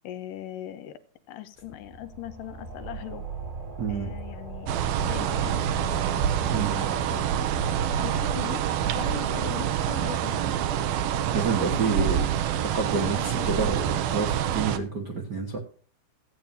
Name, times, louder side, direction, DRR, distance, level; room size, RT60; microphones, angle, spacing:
voice 1, 0.0-1.0 1.3-3.2 3.9-7.4 8.0-10.8 11.6-12.3 13.0-13.7, left 12 dB, 75° left, 12 dB, 2.3 m, -40 dB
sound 1, 1.5-12.8, right 3 dB, 30° right, 1.4 m, -42 dB
voice 2, 3.8-4.1 6.5-6.8 11.3-12.2 12.7-15.6, right 5 dB, 70° right, 1 dB, 1.0 m, -28 dB
sound 2, 4.7-14.8, right 9 dB, 85° right, 2.6 m, -26 dB
15.5 x 8.9 x 2.7 m, 0.42 s
omnidirectional pair, 4.2 m